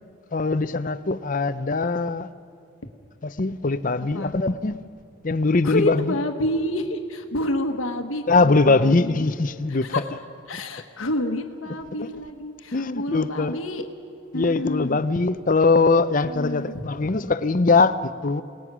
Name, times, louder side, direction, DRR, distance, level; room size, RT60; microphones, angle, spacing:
voice 1, 0.3-2.3 3.2-4.8 5.2-6.1 8.3-9.9 12.0-12.1 12.7-13.6 14.3-18.4, left 3 dB, 40° left, 0.7 m, -21 dB
voice 2, 4.0-4.3 5.6-9.1 9.7-10.1 10.5-13.9 14.3-15.0 16.2-16.8, left 1 dB, 85° left, 1.4 m, -29 dB
28.5 x 19.0 x 6.2 m
head